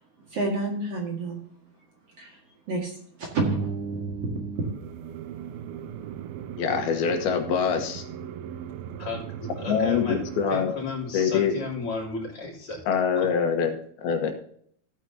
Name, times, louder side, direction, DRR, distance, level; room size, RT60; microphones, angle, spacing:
voice 1, 0.3-1.4 2.2-2.4 2.7-2.9 3.2-4.7, right 3 dB, 50° right, -1 dB, 2.5 m, -29 dB
sound 1, 4.6-10.5, right 9 dB, 80° right, 2.7 m, -38 dB
voice 2, 6.6-8.0 9.7-10.7 11.1-11.5 12.9-13.7 14.0-14.3, left 7 dB, 80° left, 5 dB, 3.1 m, -24 dB
voice 3, 9.6-10.2 10.5-12.8 13.2-13.3, left 3 dB, 35° left, -5 dB, 3.8 m, -33 dB
15.5 x 9.0 x 2.8 m, 0.62 s
omnidirectional pair, 4.4 m